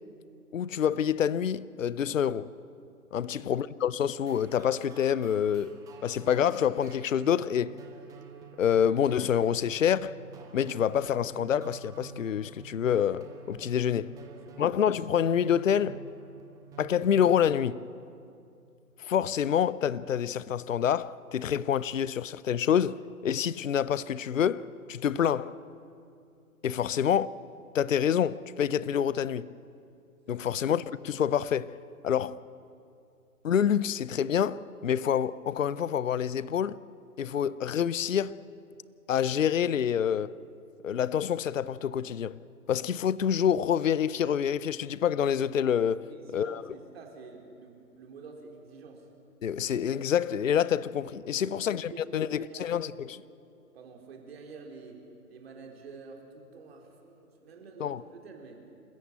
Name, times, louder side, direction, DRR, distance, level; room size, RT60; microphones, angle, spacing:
voice 1, 0.5-2.5 3.1-5.8 6.0-7.8 8.6-10.2 10.5-14.1 14.6-16.0 16.8-17.8 19.0-25.6 26.6-27.3 27.7-29.5 30.3-31.8 32.0-32.4 33.4-36.8 37.2-38.4 39.1-40.4 40.8-42.4 42.7-46.6 49.4-53.2 57.8-58.0, left 8 dB, 55° left, 0.6 m, -27 dB
sound 1, 4.2-17.3, right 7 dB, 5° right, 1.2 m, -49 dB
voice 2, 13.8-14.6 30.2-30.5 46.1-49.1 51.4-53.1 53.7-58.6, right 4 dB, 40° right, 3.9 m, -48 dB
27.5 x 15.0 x 8.9 m
figure-of-eight pair, 135°, 46 cm